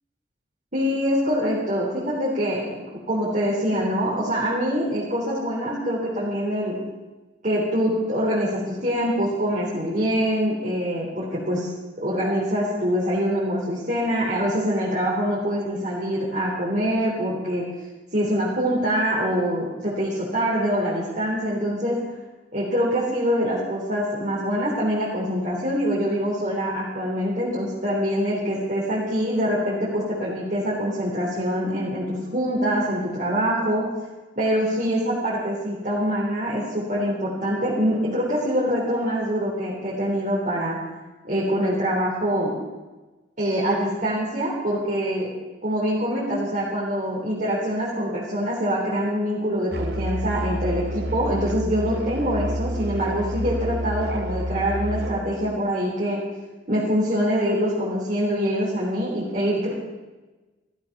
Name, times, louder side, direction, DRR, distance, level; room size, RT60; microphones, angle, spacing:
voice 1, 0.7-6.8 7.4-11.7 12.0-17.7 18.1-22.0 22.5-33.9 34.4-40.8 41.2-42.6 43.4-56.3 56.7-59.7, equal, 45° right, -7 dB, 3.8 m, -24 dB
Musical instrument, 49.7-55.3, right 1 dB, 65° right, 1.6 m, -29 dB
16.0 x 14.0 x 6.1 m, 1.2 s
head